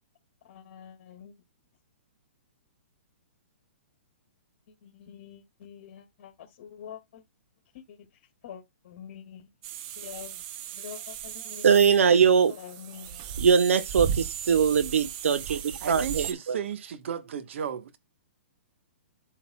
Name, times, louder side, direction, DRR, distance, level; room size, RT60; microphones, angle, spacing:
voice 1, 0.4-1.3 4.7-7.2 7.7-8.1 8.4-9.5 10.0-10.4 10.7-11.7 12.0-12.1 12.5-13.2, left 8 dB, 55° left, 2.2 m, -46 dB
sound 1, 9.6-16.3, right 8 dB, 35° right, 1.0 m, -36 dB
voice 2, 11.6-12.5 13.4-15.6 15.9-16.6, right 6 dB, 80° right, 1.2 m, -21 dB
voice 3, 15.8-18.0, right 8 dB, 65° right, 1.3 m, -34 dB
12.0 x 4.0 x 2.3 m
hypercardioid pair, 145°, 7 cm